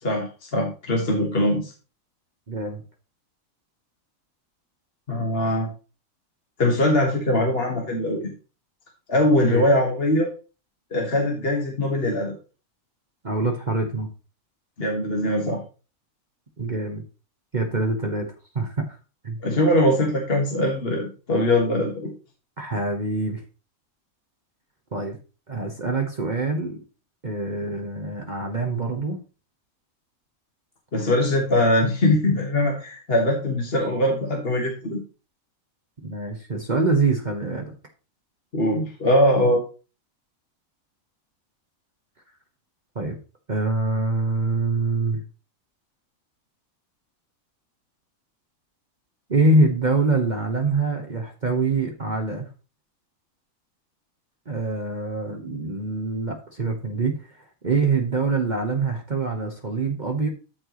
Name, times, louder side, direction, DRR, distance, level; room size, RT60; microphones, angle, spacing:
voice 1, 0.0-1.7 5.1-5.7 6.6-8.3 9.1-10.3 10.9-12.3 14.8-15.6 19.4-22.1 30.9-35.0 38.5-39.6, left 1 dB, 45° left, 0 dB, 1.7 m, -22 dB
voice 2, 2.5-2.8 9.5-9.6 13.2-14.1 16.6-17.0 17.5-18.3 18.5-18.9 19.2-19.4 22.6-23.4 24.9-25.2 25.5-26.8 27.2-29.2 36.0-37.7 42.9-43.2 43.5-45.2 49.3-52.5 54.5-57.2 57.6-60.3, right 3 dB, 35° right, 2 dB, 1.2 m, -24 dB
13.0 x 4.4 x 3.1 m, 0.34 s
omnidirectional pair, 1.5 m